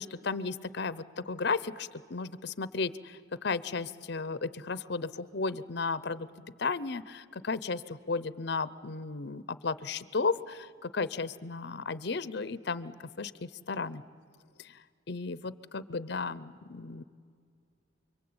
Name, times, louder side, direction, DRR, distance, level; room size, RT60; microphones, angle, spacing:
voice 1, 0.0-6.3 6.6-14.0 14.6-14.8 15.1-17.0, left 4 dB, 60° left, 16 dB, 0.7 m, -34 dB
29.0 x 23.0 x 8.7 m, 2.2 s
head